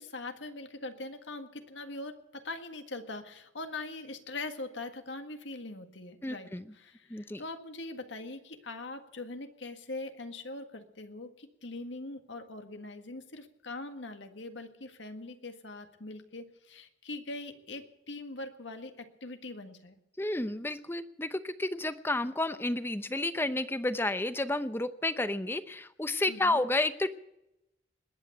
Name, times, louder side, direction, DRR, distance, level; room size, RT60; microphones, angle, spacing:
voice 1, 0.0-20.0 26.3-26.6, left 2 dB, 85° left, 7 dB, 1.7 m, -42 dB
voice 2, 6.2-6.6 7.1-7.4 20.2-27.2, left 2 dB, 10° left, 12 dB, 0.7 m, -31 dB
20.5 x 8.9 x 7.9 m, 0.87 s
head